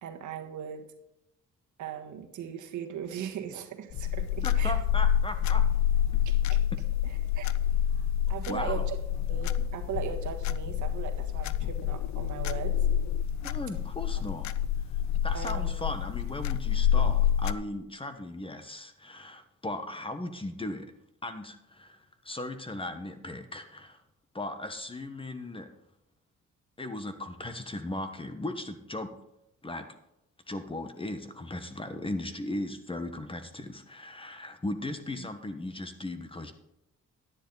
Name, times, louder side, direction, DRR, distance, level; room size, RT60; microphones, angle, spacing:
voice 1, 0.0-0.8 1.8-4.7 6.2-6.6 7.0-7.5 8.0-9.0 9.3-12.8 15.3-15.7 35.2-35.3, right 8 dB, 75° right, 5 dB, 1.6 m, -39 dB
sound 1, 3.9-17.5, left 9 dB, 65° left, 0.6 m, -28 dB
voice 2, 4.4-5.6 6.7-6.8 8.5-8.8 13.4-14.5 15.2-20.9 21.2-24.0 24.3-25.7 26.8-29.1 29.6-29.9 30.5-36.5, left 1 dB, 20° left, 8 dB, 1.3 m, -37 dB
11.0 x 9.8 x 4.0 m, 0.83 s
cardioid pair, 90°, 30 cm